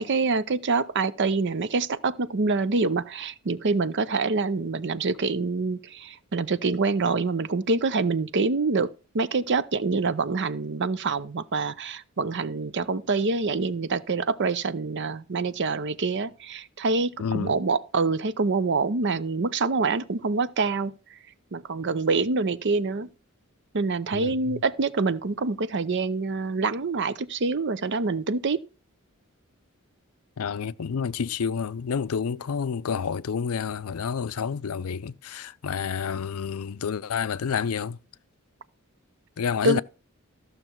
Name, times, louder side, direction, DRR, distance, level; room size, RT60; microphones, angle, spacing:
voice 1, 0.0-8.9 9.1-20.9 21.5-23.1 23.7-28.6 39.6-39.8, right 3 dB, 55° right, 0.6 m, -26 dB
voice 2, 17.2-17.6 24.1-24.6 30.4-38.0 39.4-39.8, left 6 dB, 75° left, 0.5 m, -29 dB
14.0 x 6.5 x 4.5 m
head